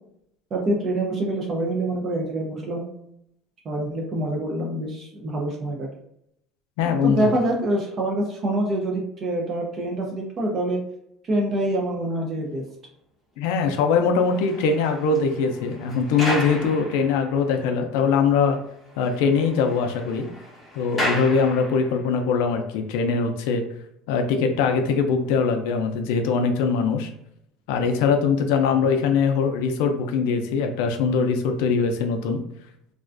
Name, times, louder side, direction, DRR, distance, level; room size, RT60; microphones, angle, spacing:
voice 1, 0.5-2.9 3.7-5.9 6.8-10.8 11.2-12.6, right 1 dB, 30° right, 0 dB, 0.4 m, -26 dB
voice 2, 6.8-7.3 13.4-18.6 19.0-20.3 20.8-23.6 24.1-27.1 27.7-32.4, left 5 dB, 80° left, 5 dB, 0.3 m, -22 dB
sound 1, 14.0-17.7 18.1-18.2 18.5-18.6 18.9-22.2 22.8-23.0, equal, 15° left, 0.6 m, -34 dB
2.4 x 2.2 x 2.4 m, 0.75 s
cardioid pair, 170°, 0 cm